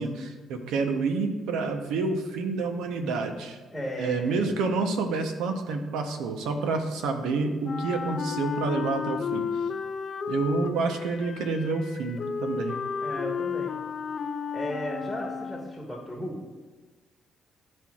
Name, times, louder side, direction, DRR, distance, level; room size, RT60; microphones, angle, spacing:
voice 1, 0.0-3.6 4.0-9.4 10.3-12.8, right 4 dB, 90° right, 6 dB, 0.7 m, -28 dB
voice 2, 3.7-4.5 13.0-13.8 14.5-16.4, equal, 5° left, -2 dB, 1.3 m, -35 dB
Wind instrument woodwind instrument, 7.6-15.9, left 6 dB, 50° left, 0.4 m, -33 dB
12.0 x 4.3 x 2.4 m, 1.3 s
cardioid pair, 90°, 0 cm